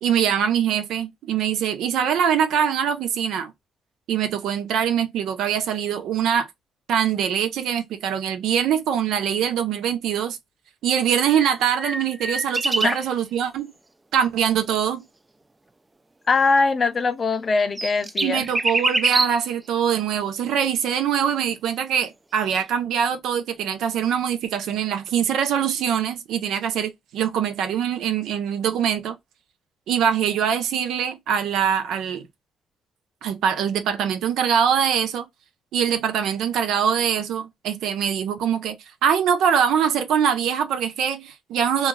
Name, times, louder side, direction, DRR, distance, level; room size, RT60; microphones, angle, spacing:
voice 1, 0.0-3.5 4.1-6.5 6.9-10.4 10.8-13.7 14.1-15.0 18.2-29.1 29.9-32.3 33.2-35.3 35.7-38.8 39.0-41.9, right 8 dB, 80° right, 0.5 m, -23 dB
sound 1, 11.2-13.1 17.3-19.5 22.5-22.6, right 2 dB, 15° right, 0.3 m, -25 dB
voice 2, 16.3-18.5, left 4 dB, 40° left, 0.5 m, -21 dB
2.4 x 2.3 x 3.0 m
cardioid pair, 90°, 0 cm